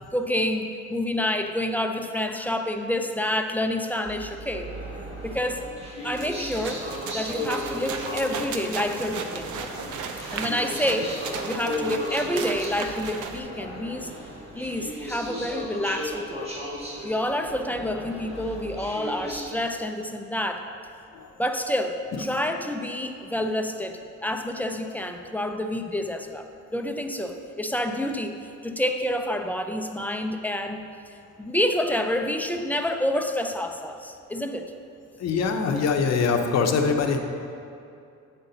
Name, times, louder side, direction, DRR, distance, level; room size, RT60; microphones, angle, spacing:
voice 1, 0.1-4.7 5.2-5.7 6.0-6.8 7.1-9.6 10.3-14.1 14.5-16.5 17.0-20.7 21.4-26.5 26.7-30.9 31.4-34.7, left 1 dB, 5° left, 5 dB, 0.4 m, -28 dB
sound 1, 4.0-19.5, equal, 20° right, 1.6 m, -36 dB
sound 2, 6.1-13.4, right 6 dB, 85° right, 0.7 m, -35 dB
voice 2, 35.2-37.2, left 5 dB, 60° left, 5 dB, 0.8 m, -23 dB
8.1 x 5.6 x 3.9 m, 2.6 s
cardioid pair, 90°, 30 cm